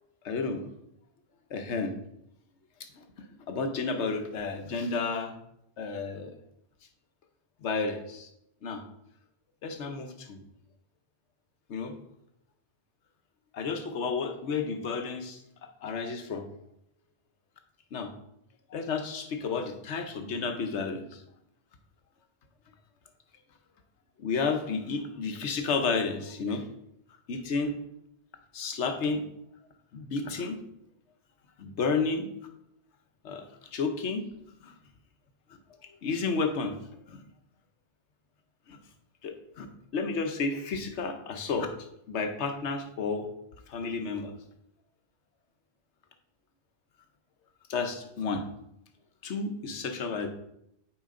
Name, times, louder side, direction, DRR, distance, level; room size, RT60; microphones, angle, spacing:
voice 1, 0.2-0.7 1.5-1.9 3.5-5.3 5.8-6.3 7.6-8.3 8.6-8.8 9.6-10.4 11.7-11.9 13.5-15.4 15.8-16.5 17.9-18.1 18.7-21.2 24.2-26.6 27.3-27.8 28.5-29.2 29.9-30.6 31.6-32.3 33.2-33.4 33.7-34.2 34.6-34.7 36.0-36.8 37.1-37.2 38.7-38.8 39.2-39.7 39.9-41.7 42.1-43.3 43.7-44.3 47.7-48.5 49.2-50.3, left 4 dB, 75° left, 6 dB, 1.2 m, -31 dB
8.9 x 5.0 x 3.8 m, 0.78 s
omnidirectional pair, 1.2 m